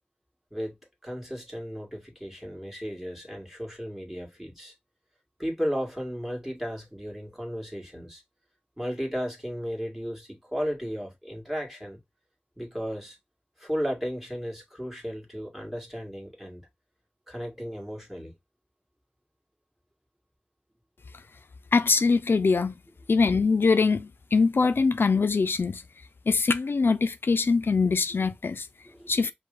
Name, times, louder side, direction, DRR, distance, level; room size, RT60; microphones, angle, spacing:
voice 1, 0.5-4.7 5.4-8.2 8.8-12.0 12.6-13.2 13.6-16.6 17.3-18.3 28.9-29.1, equal, 5° right, 2.0 m, -34 dB
voice 2, 21.7-22.7 23.1-25.8 26.3-28.7 29.1-29.3, left 4 dB, 85° left, 0.3 m, -23 dB
5.2 x 2.2 x 3.8 m
wide cardioid pair, 50°, 4 cm